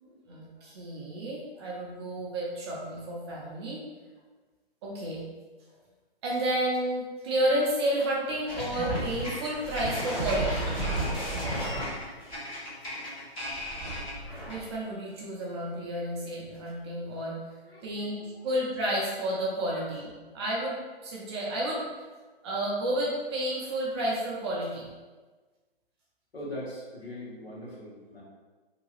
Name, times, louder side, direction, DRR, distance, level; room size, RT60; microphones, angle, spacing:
voice 1, 0.0-3.8 4.8-5.2 6.2-10.7 14.5-17.3 17.8-21.8 22.4-24.9, right 1 dB, 25° right, -5 dB, 0.6 m, -31 dB
sound 1, 8.5-14.7, right 1 dB, 15° left, 0.8 m, -33 dB
voice 2, 17.6-18.4 19.7-19.9 26.3-28.2, left 1 dB, 80° left, -5 dB, 1.3 m, -41 dB
2.8 x 2.2 x 3.1 m, 1.3 s
hypercardioid pair, 145°, 30 cm